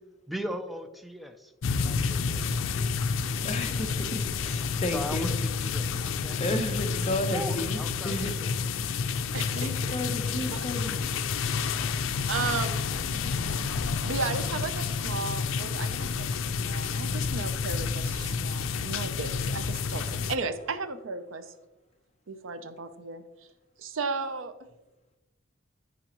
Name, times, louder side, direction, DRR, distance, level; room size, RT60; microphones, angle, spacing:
voice 1, 0.3-1.5 1.8-3.1 3.7-4.1 4.9-5.9 6.2-6.4 7.3-8.5, equal, ahead, 7 dB, 0.5 m, -38 dB
sound 1, 1.6-20.4, left 5 dB, 85° left, 0.5 m, -30 dB
sound 2, 1.7-7.9, equal, 55° right, 1.9 m, -50 dB
voice 2, 3.4-5.3 6.4-8.3 9.2-11.0, left 1 dB, 35° left, 5 dB, 0.8 m, -33 dB
voice 3, 9.3-10.0 10.5-10.6 12.3-12.9 13.1-13.3 14.0-16.3 16.6-21.5 22.3-23.2 23.8-24.7, right 4 dB, 90° right, 11 dB, 0.7 m, -35 dB
12.5 x 5.1 x 3.0 m, 1.0 s
head